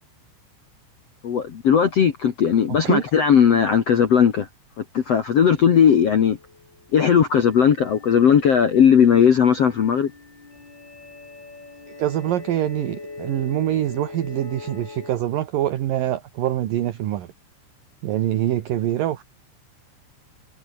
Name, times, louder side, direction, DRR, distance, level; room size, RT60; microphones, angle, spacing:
voice 1, 1.2-4.5 4.8-6.4 6.9-10.1, left 8 dB, 70° left, 1.5 m, -17 dB
sound 1, 5.5-15.2, left 3 dB, 25° left, 5.1 m, -42 dB
voice 2, 12.0-17.3 18.0-19.2, right 12 dB, 65° right, 2.4 m, -24 dB
omnidirectional pair, 5.5 m